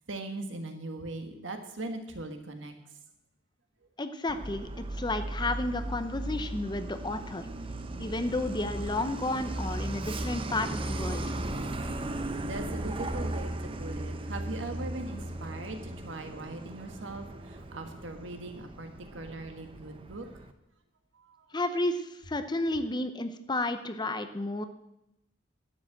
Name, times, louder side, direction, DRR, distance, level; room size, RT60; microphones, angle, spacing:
voice 1, 0.1-2.7 11.8-11.9 12.4-20.3 21.1-21.5, right 2 dB, 70° right, 6 dB, 1.6 m, -40 dB
voice 2, 4.0-7.5 8.0-11.3 21.5-24.7, left 2 dB, 20° left, 10 dB, 0.7 m, -32 dB
Truck, 4.3-20.5, right 1 dB, 25° right, 0.8 m, -37 dB
11.5 x 7.7 x 7.7 m, 0.87 s
head